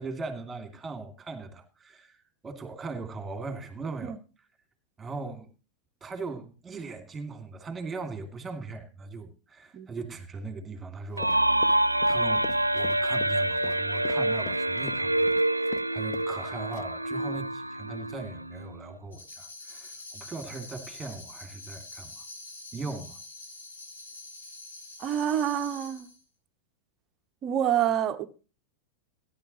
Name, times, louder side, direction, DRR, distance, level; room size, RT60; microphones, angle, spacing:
voice 1, 0.0-4.2 5.0-5.5 6.0-11.4 12.1-22.2 22.7-23.2, right 3 dB, 15° right, 2.6 m, -39 dB
voice 2, 9.7-10.0 25.0-26.1 27.4-28.3, right 10 dB, 30° right, 1.1 m, -27 dB
Run, 11.1-15.9 16.1-16.4 16.7-17.1, left 13 dB, 40° left, 0.6 m, -42 dB
sound 1, 11.2-18.8, right 1 dB, 85° right, 0.5 m, -27 dB
Tambourine, 19.1-26.2, left 2 dB, 70° left, 3.9 m, -45 dB
17.5 x 10.5 x 3.0 m
figure-of-eight pair, 90°, 0 cm